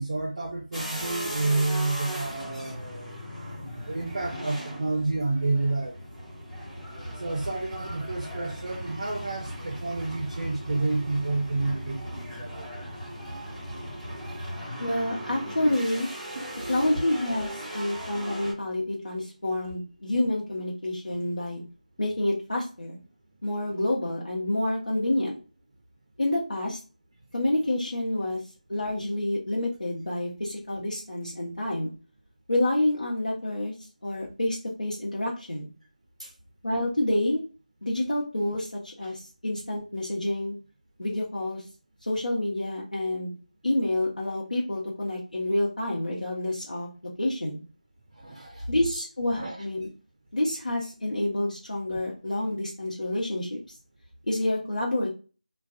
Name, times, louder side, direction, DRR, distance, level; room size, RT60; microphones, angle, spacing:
voice 1, 0.0-3.2 3.9-6.0 7.2-12.7 14.1-14.3 15.7-15.8 16.4-16.8 36.2-36.3 39.0-39.1 48.2-48.7 49.3-49.6, right 2 dB, 40° right, 1 dB, 0.4 m, -30 dB
sound 1, 0.7-18.5, equal, 5° left, 0.6 m, -38 dB
voice 2, 14.8-16.1 16.7-21.6 22.0-23.0 23.4-25.4 26.2-26.8 27.3-28.4 28.7-31.9 32.5-33.7 34.0-35.7 36.6-37.4 37.8-40.5 41.0-41.6 42.0-43.3 43.6-46.9 47.2-47.6 48.7-49.9 50.3-53.6 54.3-55.1, left 1 dB, 75° left, -3 dB, 0.7 m, -28 dB
2.2 x 2.2 x 2.5 m, 0.35 s
figure-of-eight pair, 170°, 4 cm